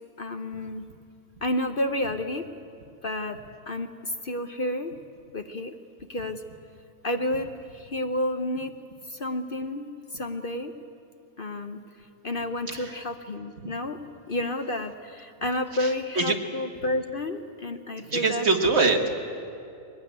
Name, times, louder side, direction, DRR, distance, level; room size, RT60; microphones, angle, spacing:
voice 1, 0.2-0.9 1.4-2.4 3.0-3.4 3.7-4.9 5.3-5.7 6.1-6.4 7.0-8.8 9.1-10.7 11.4-11.8 12.2-14.0 14.3-18.4, left 1 dB, 40° left, 7 dB, 0.9 m, -30 dB
voice 2, 15.8-16.3 18.1-19.1, right 3 dB, 40° right, 4 dB, 1.6 m, -24 dB
22.0 x 18.5 x 9.5 m, 2.6 s
omnidirectional pair, 1.7 m